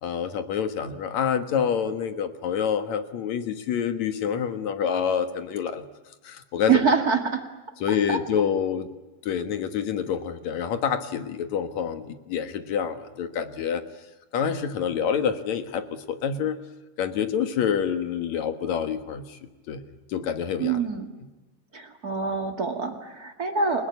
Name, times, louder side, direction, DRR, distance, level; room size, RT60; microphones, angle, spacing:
voice 1, 0.0-5.8 6.2-6.7 7.8-8.9 9.2-13.8 14.3-16.6 17.0-19.4 19.7-19.8 20.1-20.8, left 7 dB, 60° left, 9 dB, 2.2 m, -27 dB
voice 2, 6.7-7.4 7.9-8.2 20.6-21.1 21.7-23.9, right 5 dB, 35° right, 5 dB, 1.7 m, -25 dB
29.5 x 19.0 x 9.4 m, 1.2 s
omnidirectional pair, 4.7 m